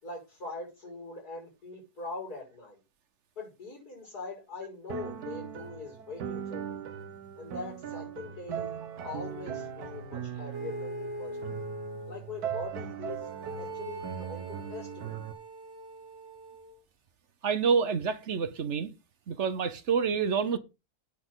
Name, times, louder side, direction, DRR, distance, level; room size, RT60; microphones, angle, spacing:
voice 1, 0.0-2.8 3.4-6.8 7.4-11.4 12.1-15.2, left 3 dB, 80° left, 6.3 m, -42 dB
sound 1, 4.9-15.3, right 8 dB, 80° right, 1.5 m, -39 dB
sound 2, 10.5-12.2 13.2-16.8, right 1 dB, 15° right, 2.1 m, -41 dB
voice 2, 17.4-18.9 19.3-20.6, right 6 dB, 50° right, 1.2 m, -27 dB
9.0 x 5.8 x 6.3 m
omnidirectional pair, 1.6 m